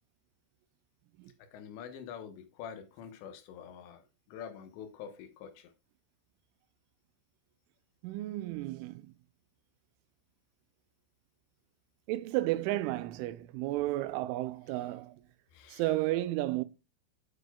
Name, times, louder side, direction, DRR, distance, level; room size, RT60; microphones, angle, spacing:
voice 1, 1.4-4.0 4.3-5.7 15.5-15.8, left 8 dB, 75° left, 3.1 m, -46 dB
voice 2, 8.0-9.1 12.1-15.2 15.7-16.6, right 16 dB, 85° right, 3.0 m, -33 dB
9.2 x 7.9 x 2.3 m
omnidirectional pair, 5.7 m